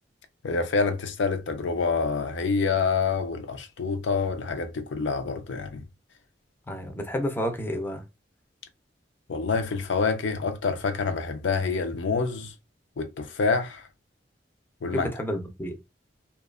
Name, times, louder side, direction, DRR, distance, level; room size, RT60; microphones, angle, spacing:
voice 1, 0.4-5.8 9.3-12.5 13.0-13.9 14.8-15.1, left 4 dB, 85° left, 0.5 m, -27 dB
voice 2, 6.7-8.0 14.9-15.7, equal, 10° left, 0.4 m, -30 dB
2.7 x 2.2 x 2.3 m
head